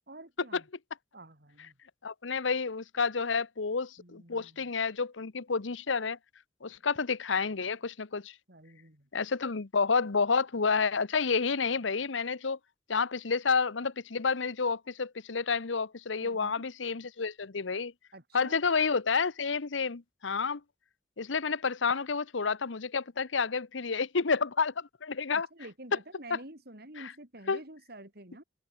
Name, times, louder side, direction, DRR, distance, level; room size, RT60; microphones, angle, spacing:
voice 1, 0.1-0.7 1.1-1.8 4.0-4.7 8.5-9.1 16.1-16.7 18.1-18.6 25.3-28.4, right 1 dB, 55° right, 7.6 m, -49 dB
voice 2, 2.0-6.2 6.6-8.3 9.1-12.6 12.9-17.9 18.3-20.6 21.2-25.5 26.3-26.4 27.5-27.6, left 5 dB, 85° left, 0.9 m, -30 dB
head